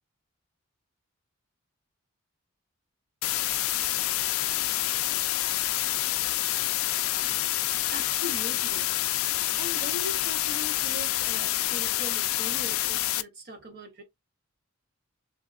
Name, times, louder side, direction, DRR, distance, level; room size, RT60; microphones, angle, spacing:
sound 1, 3.2-13.2, left 15 dB, 75° left, 0.3 m, -27 dB
voice 1, 7.9-14.0, left 1 dB, 50° right, 0.9 m, -41 dB
3.4 x 2.7 x 2.4 m
head